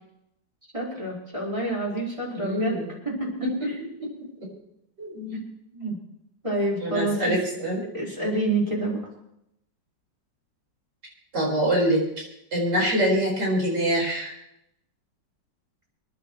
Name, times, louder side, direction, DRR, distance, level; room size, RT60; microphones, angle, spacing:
voice 1, 0.7-2.8 3.0-3.3 5.3-5.5 5.7-5.9 6.4-7.2 7.9-9.0, right 2 dB, 15° right, -5 dB, 5.0 m, -27 dB
voice 2, 2.3-2.9 3.4-4.1 5.0-5.4 6.8-7.8 11.3-12.2 12.5-14.3, equal, 65° right, -3 dB, 5.7 m, -25 dB
27.5 x 11.5 x 3.2 m, 0.78 s
omnidirectional pair, 2.0 m